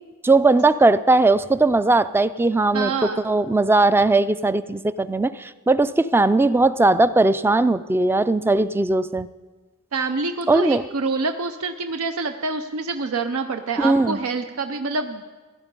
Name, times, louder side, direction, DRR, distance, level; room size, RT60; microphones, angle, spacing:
voice 1, 0.2-9.3 10.5-10.8 13.8-14.2, right 2 dB, 10° right, 15 dB, 0.3 m, -18 dB
voice 2, 2.7-3.2 9.9-15.2, right 4 dB, 85° right, 8 dB, 0.6 m, -26 dB
16.5 x 11.0 x 5.3 m, 1.3 s
head